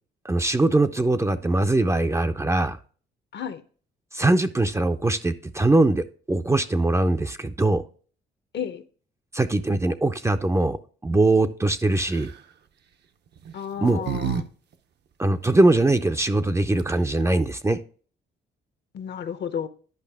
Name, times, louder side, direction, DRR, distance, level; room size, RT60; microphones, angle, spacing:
voice 1, 0.2-2.8 4.1-7.8 9.3-10.8 11.0-12.3 13.8-14.0 15.2-17.8, right 2 dB, 15° right, 0.5 m, -21 dB
sound 1, 12.0-12.4 13.4-14.4 14.7-14.8 16.5-16.6 16.8-17.2, right 8 dB, 60° right, 0.7 m, -31 dB
voice 2, 13.5-14.5 18.9-19.7, left 8 dB, 60° left, 0.8 m, -32 dB
10.5 x 5.3 x 3.5 m
cardioid pair, 90°, 20 cm